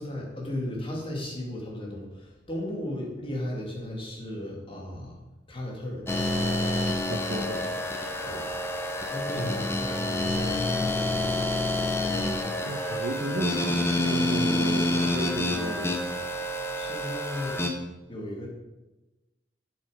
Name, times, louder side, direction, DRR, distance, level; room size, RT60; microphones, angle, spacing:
voice 1, 0.0-5.2 5.5-6.2 8.2-8.6 9.1-11.7 16.7-17.6 18.1-18.5, left 1 dB, 30° left, -3 dB, 2.3 m, -36 dB
sound 1, 6.1-17.7, left 1 dB, 15° left, 0.8 m, -28 dB
voice 2, 7.1-7.7 9.3-9.7 12.6-16.0, right 1 dB, 85° right, 6 dB, 1.0 m, -33 dB
7.6 x 7.2 x 5.0 m, 1.1 s
head